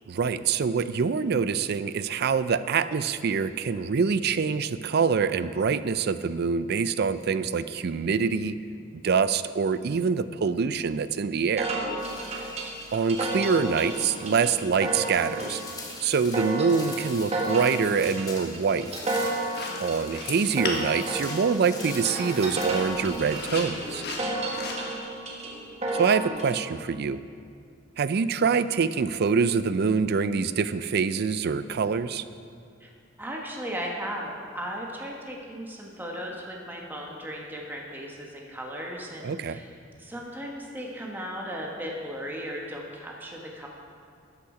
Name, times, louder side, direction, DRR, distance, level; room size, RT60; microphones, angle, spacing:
voice 1, 0.1-8.6 9.0-11.7 12.9-15.6 16.0-18.9 19.8-24.0 25.9-27.2 28.0-32.2 39.2-39.6, right 5 dB, 55° right, 14 dB, 0.4 m, -25 dB
sound 1, 11.6-26.6, right 2 dB, 30° right, 1.5 m, -32 dB
sound 2, 12.0-23.5, left 3 dB, 20° left, 1.6 m, -44 dB
sound 3, 19.2-25.0, left 3 dB, 55° left, 1.5 m, -38 dB
voice 2, 19.5-19.9 24.8-25.0 32.8-32.9 33.2-39.7 40.0-43.7, equal, 10° right, -1 dB, 1.1 m, -36 dB
12.5 x 8.6 x 4.9 m, 2.2 s
head